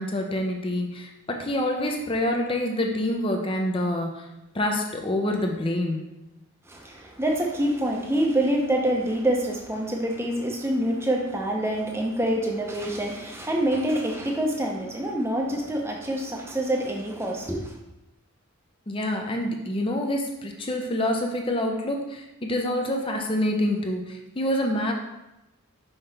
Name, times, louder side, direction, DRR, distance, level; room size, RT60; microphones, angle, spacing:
voice 1, 0.0-4.3 4.5-6.0 18.9-24.9, left 1 dB, 25° left, 2 dB, 0.6 m, -27 dB
voice 2, 6.7-17.7, right 1 dB, 10° right, 0 dB, 0.7 m, -26 dB
5.6 x 5.5 x 3.4 m, 0.94 s
head